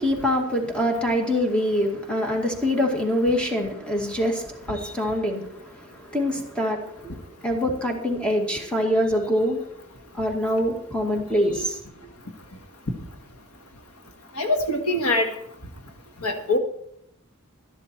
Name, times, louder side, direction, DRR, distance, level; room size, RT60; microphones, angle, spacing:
voice 1, 0.0-9.6 10.1-11.8, equal, 5° left, 1 dB, 2.1 m, -25 dB
voice 2, 14.4-15.3 16.2-16.6, left 2 dB, 90° left, 5 dB, 1.7 m, -23 dB
13.0 x 11.5 x 4.5 m, 0.72 s
head